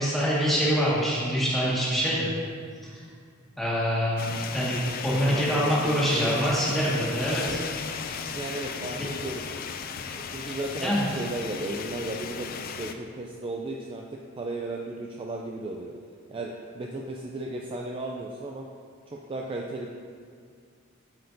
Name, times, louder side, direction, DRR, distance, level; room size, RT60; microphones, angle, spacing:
voice 1, 0.0-2.3 3.6-7.6 8.0-8.2 10.5-11.1, equal, ahead, -9 dB, 1.8 m, -25 dB
sound 1, 4.2-12.9, left 6 dB, 45° left, 0.3 m, -36 dB
voice 2, 5.3-6.4 8.3-9.4 10.3-15.9 16.3-18.6 19.1-20.0, right 2 dB, 25° right, 0 dB, 0.4 m, -35 dB
7.8 x 6.6 x 2.7 m, 2.1 s
head